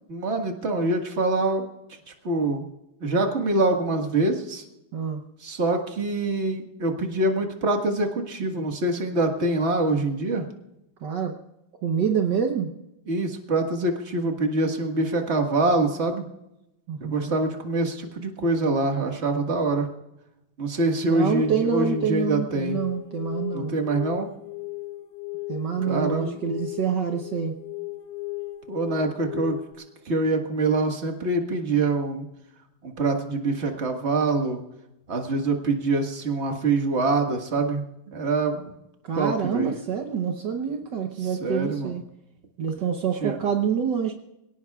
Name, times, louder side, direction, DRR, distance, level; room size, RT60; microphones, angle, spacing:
voice 1, 0.1-1.7 2.2-2.7 3.0-4.6 5.4-10.4 13.1-16.2 17.0-19.9 20.6-22.8 23.5-24.3 25.8-26.4 28.7-29.6 30.1-32.3 32.8-34.6 35.1-38.7 39.1-39.7 41.4-41.9 43.2-43.4, right 2 dB, 35° right, 3 dB, 1.9 m, -25 dB
voice 2, 11.0-11.3 11.8-12.7 16.9-17.3 21.1-23.7 25.5-27.5 39.0-42.0 42.6-44.1, right 7 dB, 65° right, 4 dB, 1.6 m, -26 dB
sound 1, 21.3-29.7, left 18 dB, 60° left, 2.4 m, -36 dB
25.0 x 17.5 x 2.4 m, 0.89 s
omnidirectional pair, 2.1 m